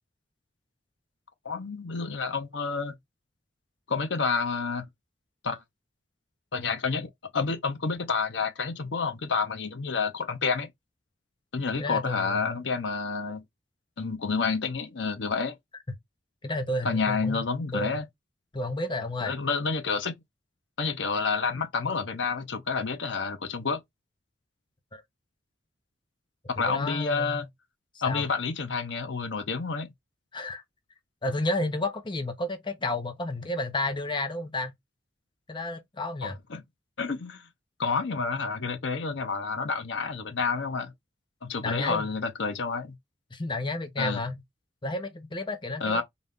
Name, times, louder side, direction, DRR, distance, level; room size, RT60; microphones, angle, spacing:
voice 1, 1.4-3.0 3.9-4.9 5.4-5.6 6.5-10.7 11.5-13.4 14.0-15.6 16.8-18.1 19.2-20.2 20.8-23.8 26.6-27.5 28.0-29.9 36.2-36.6 37.0-37.5 37.8-40.9 41.4-43.0 44.0-44.2 45.8-46.0, left 4 dB, 70° left, 0.7 m, -29 dB
voice 2, 11.8-12.6 15.9-16.0 16.4-17.4 17.7-18.0 18.5-19.3 24.9-25.0 26.6-27.5 28.0-28.3 30.3-30.6 31.2-34.7 35.5-36.4 41.6-42.1 43.3-44.4 44.8-46.0, left 2 dB, 25° left, 0.7 m, -31 dB
4.0 x 2.3 x 3.4 m
head